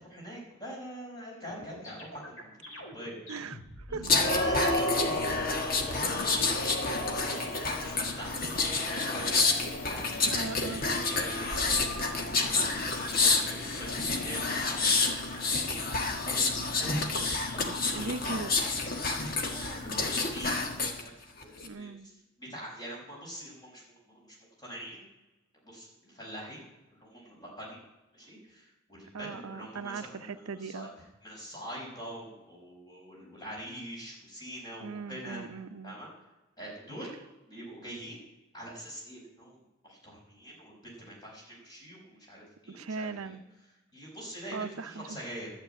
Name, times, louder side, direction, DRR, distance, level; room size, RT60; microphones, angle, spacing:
voice 1, 0.1-3.1 3.9-5.1 5.7-6.5 7.1-9.5 9.8-10.3 11.1-12.0 12.4-15.0 15.4-16.5 16.8-18.1 19.5-22.1 22.4-25.1 25.6-26.6 26.9-27.8 28.1-30.9 31.2-35.4 35.8-36.1 36.6-37.1 37.5-38.2 38.5-43.4 43.9-45.5, equal, 20° left, -3 dB, 5.1 m, -43 dB
sound 1, 1.5-5.4 5.7-8.0 8.3-9.0 9.4-12.1 12.8-14.0, left 1 dB, 70° left, 4.2 m, -45 dB
voice 2, 3.3-3.6 3.9-4.1 4.5-4.8 10.3-10.9 12.8-12.9 16.5-16.6 17.8-18.5 21.6-22.1 29.1-30.9 34.8-36.0 42.7-43.4 44.5-45.2, right 4 dB, 80° right, 10 dB, 0.7 m, -39 dB
sound 2, 4.0-21.0 21.4-21.7, left 3 dB, 40° left, 1.5 m, -29 dB
11.5 x 7.8 x 8.9 m, 1.0 s
head